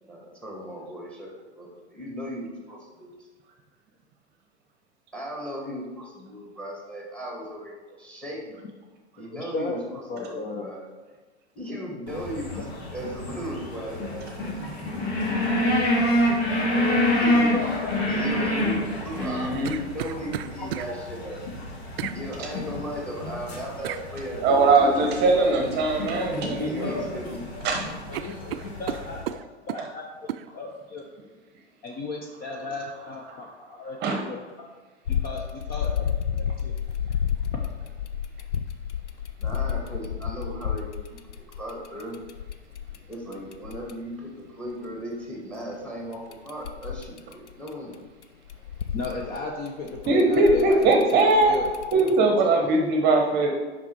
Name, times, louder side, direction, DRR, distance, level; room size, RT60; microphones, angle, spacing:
voice 1, 0.0-3.3 5.1-7.7 8.0-8.6 9.2-10.8 11.5-12.6 12.9-14.7 17.2-17.7 18.1-21.4 21.7-25.8 26.7-27.4 39.4-41.2 41.6-42.2 43.1-48.0, equal, 5° left, -2 dB, 1.8 m, -37 dB
voice 2, 9.3-9.8 10.1-10.7 17.1-17.2 17.5-17.9 20.6-20.7 24.8-24.9 26.6-27.1 27.5-27.6 28.1-29.4 29.7-31.0 31.8-34.0 34.2-34.7 35.1-36.0 36.4-36.7 48.9-51.7 52.4-52.8, left 3 dB, 25° left, 1 dB, 0.7 m, -35 dB
sound 1, 12.1-29.2, left 1 dB, 65° left, 2.0 m, -28 dB
sound 2, 19.1-20.9 22.0-22.2 23.8-24.1 26.0-26.3 26.7-27.4 27.7-27.8 28.1-29.9 30.3-30.5, right 12 dB, 55° right, 0.4 m, -34 dB
voice 3, 19.2-19.8 24.4-26.9 27.6-27.8 34.0-34.2 50.1-51.5 51.9-53.5, right 3 dB, 30° right, 2 dB, 1.0 m, -20 dB
sound 3, 35.0-43.9 46.1-47.9 48.2-52.1, left 8 dB, 85° left, 0.6 m, -31 dB
5.9 x 5.3 x 4.5 m, 1.3 s
hypercardioid pair, 105°, 34 cm